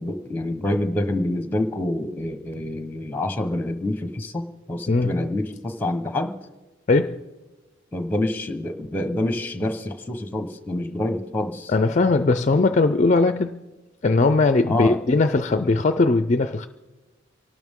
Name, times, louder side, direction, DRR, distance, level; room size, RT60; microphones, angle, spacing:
voice 1, 0.0-6.3 7.9-11.7 14.7-15.0, left 1 dB, 10° left, 1.0 m, -27 dB
voice 2, 4.9-5.2 6.9-7.2 11.7-13.6 14.0-16.7, left 3 dB, 35° left, 0.4 m, -19 dB
28.0 x 12.0 x 3.7 m
head